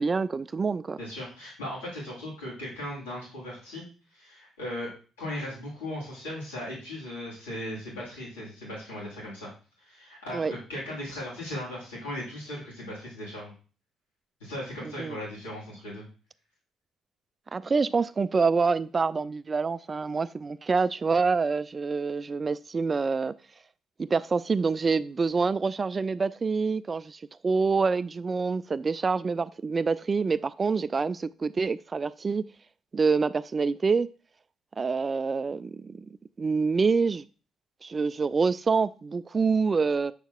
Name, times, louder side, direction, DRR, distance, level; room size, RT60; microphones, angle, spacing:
voice 1, 0.0-1.0 10.3-10.5 14.8-15.2 17.5-23.3 24.0-32.4 32.9-34.1 34.8-37.3 37.8-40.1, right 4 dB, 35° right, 0.3 m, -26 dB
voice 2, 1.0-3.8 4.1-4.9 5.2-9.5 9.8-13.5 14.4-16.0, left 1 dB, 85° left, 2.9 m, -37 dB
7.2 x 6.3 x 2.3 m
figure-of-eight pair, 45°, 0 cm